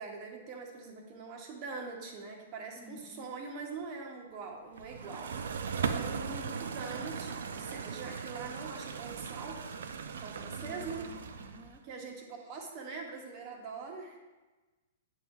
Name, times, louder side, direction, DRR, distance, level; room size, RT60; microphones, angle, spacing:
voice 1, 0.0-9.7 10.2-11.2 11.8-14.2, right 4 dB, 40° right, 1 dB, 1.2 m, -43 dB
voice 2, 2.7-3.3 10.6-11.8, left 2 dB, 5° right, -1 dB, 0.6 m, -52 dB
sound 1, 4.8-11.8, right 6 dB, 65° right, 0.4 m, -38 dB
8.9 x 3.7 x 4.2 m, 1.2 s
figure-of-eight pair, 110°, 0 cm